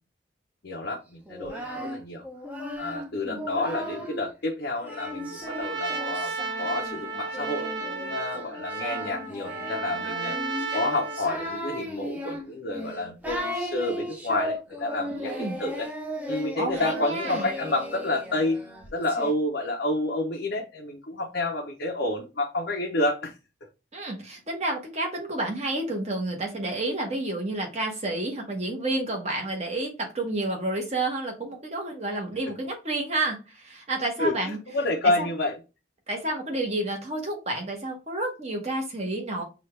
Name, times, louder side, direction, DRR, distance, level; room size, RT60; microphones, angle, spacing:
voice 1, 0.6-2.2 2.8-7.7 8.0-15.9 16.3-18.6 18.9-23.4 34.2-35.6, left 2 dB, 60° left, -1 dB, 0.6 m, -29 dB
Singing, 1.3-4.3 4.8-19.3, equal, 10° right, 0.6 m, -36 dB
Trumpet, 4.9-11.7, right 4 dB, 70° right, 1.2 m, -34 dB
voice 2, 15.1-15.6 16.6-17.5 23.9-34.6 35.2-35.3 36.1-39.4, right 2 dB, 35° right, 1 dB, 1.2 m, -30 dB
5.6 x 2.4 x 3.2 m, 0.29 s
head